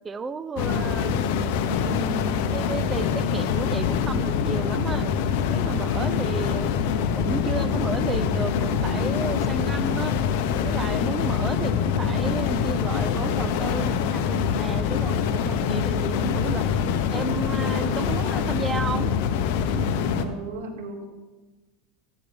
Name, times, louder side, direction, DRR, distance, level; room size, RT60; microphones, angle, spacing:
voice 1, 0.0-1.2 1.9-5.1 5.5-6.7 7.2-10.2 10.6-16.6 17.1-19.1 19.7-19.9, right 4 dB, 20° right, 14 dB, 0.4 m, -33 dB
sound 1, 0.6-20.3, left 7 dB, 65° left, 0.8 m, -24 dB
voice 2, 5.8-6.2 11.0-11.4 20.2-21.0, right 3 dB, 75° right, 2 dB, 2.1 m, -38 dB
13.0 x 9.4 x 3.5 m, 1.2 s
supercardioid pair, 115°, 0 cm